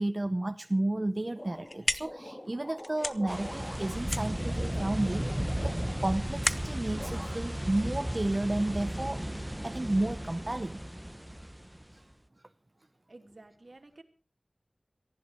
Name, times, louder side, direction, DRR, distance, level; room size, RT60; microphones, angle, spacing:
voice 1, 0.0-9.4 9.6-10.9 11.9-12.0, right 1 dB, 35° right, 11 dB, 0.8 m, -32 dB
sound 1, 1.4-8.3, left 1 dB, 40° left, 1.1 m, -37 dB
sound 2, 1.4-6.6 6.9-7.7 8.0-8.9, left 1 dB, 20° left, 3.3 m, -45 dB
sound 3, 3.3-11.9, right 1 dB, 10° right, 0.9 m, -35 dB
voice 2, 13.1-14.0, right 2 dB, 55° right, 7 dB, 2.8 m, -52 dB
18.5 x 15.0 x 4.7 m, 0.37 s
wide cardioid pair, 45°, 0 cm